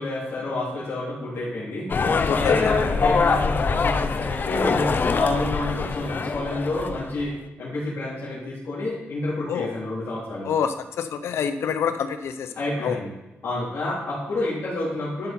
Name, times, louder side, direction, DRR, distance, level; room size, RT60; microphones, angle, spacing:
voice 1, 0.0-1.9 2.3-7.3 7.6-10.5 12.5-13.1 13.4-15.3, left 2 dB, 70° left, -9 dB, 3.4 m, -29 dB
sound 1, 1.9-7.3, left 4 dB, 50° left, 0.7 m, -23 dB
voice 2, 2.3-2.7 9.5-9.7 10.4-12.5 12.8-13.0, left 7 dB, 85° left, 10 dB, 0.7 m, -26 dB
12.0 x 5.5 x 4.3 m, 1.1 s
cardioid pair, 75°, 4 cm